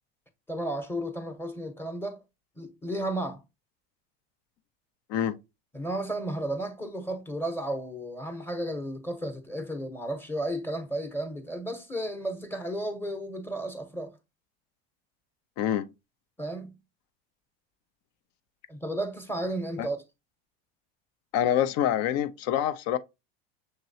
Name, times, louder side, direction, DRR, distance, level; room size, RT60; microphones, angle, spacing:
voice 1, 0.5-2.2 2.6-3.4 5.7-14.1 16.4-16.8 18.7-20.0, right 1 dB, 5° left, 1.0 m, -33 dB
voice 2, 21.3-23.0, left 10 dB, 55° left, 0.7 m, -26 dB
6.6 x 2.9 x 2.8 m
supercardioid pair, 115°, 31 cm